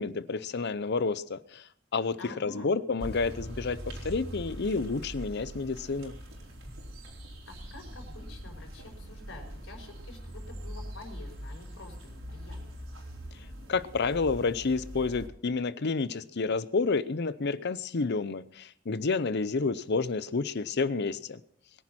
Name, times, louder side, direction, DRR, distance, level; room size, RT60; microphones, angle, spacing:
voice 1, 0.0-1.6 1.9-2.2 2.4-3.8 4.0-6.1 13.7-21.4, left 4 dB, 55° left, 16 dB, 0.6 m, -29 dB
voice 2, 2.2-2.7 7.5-12.6, left 2 dB, 70° left, 1 dB, 4.5 m, -48 dB
sound 1, 3.0-15.3, equal, 75° right, 4.5 m, -42 dB
22.0 x 10.5 x 4.3 m, 0.63 s
head